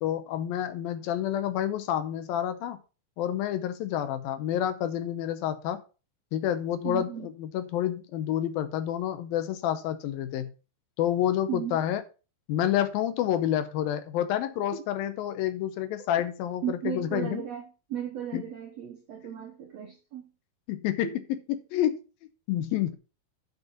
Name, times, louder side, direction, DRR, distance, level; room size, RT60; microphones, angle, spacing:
voice 1, 0.0-2.8 3.2-5.8 6.3-10.5 11.0-12.0 12.5-17.4 18.3-18.4 20.7-22.0 22.5-22.9, left 11 dB, 75° left, 11 dB, 2.3 m, -29 dB
voice 2, 6.8-7.3 11.5-11.8 14.7-14.8 16.6-20.2 21.0-21.1, right 10 dB, 90° right, 4 dB, 1.4 m, -35 dB
8.1 x 5.5 x 5.8 m, 0.33 s
omnidirectional pair, 4.7 m